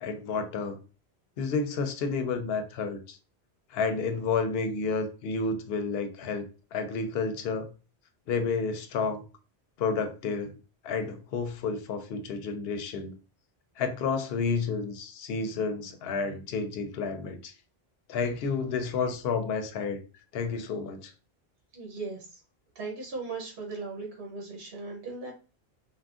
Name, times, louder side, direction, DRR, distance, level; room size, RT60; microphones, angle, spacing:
voice 1, 0.0-0.8 1.4-3.2 3.7-7.7 8.3-9.2 9.8-10.6 10.8-13.1 13.8-17.5 18.1-20.0 20.3-21.1, left 4 dB, 70° left, 0.8 m, -30 dB
voice 2, 21.7-22.4 22.7-25.3, right 3 dB, 70° right, 1.0 m, -38 dB
3.5 x 2.1 x 2.3 m
omnidirectional pair, 1.1 m